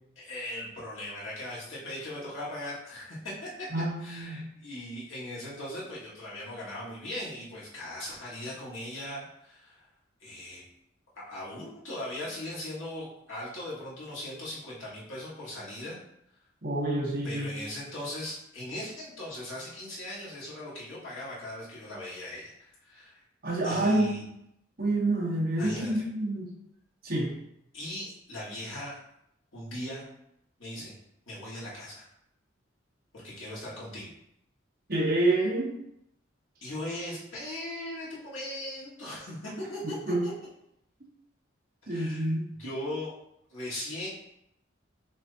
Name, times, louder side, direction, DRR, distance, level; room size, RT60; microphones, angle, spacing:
voice 1, 0.2-3.7 4.0-9.9 10.2-10.6 11.2-16.0 17.2-23.2 23.6-24.2 25.6-26.0 27.7-29.0 29.5-30.1 30.6-30.9 31.3-32.1 33.1-34.1 36.6-40.3 41.9-43.2 43.5-44.1, left 1 dB, 85° left, -7 dB, 1.7 m, -39 dB
voice 2, 3.7-4.5 16.6-17.5 23.4-24.2 24.8-26.5 27.0-27.3 34.9-35.7 39.8-40.2 41.9-42.4, right 1 dB, 50° right, -4 dB, 1.3 m, -28 dB
6.0 x 2.7 x 2.7 m, 0.78 s
head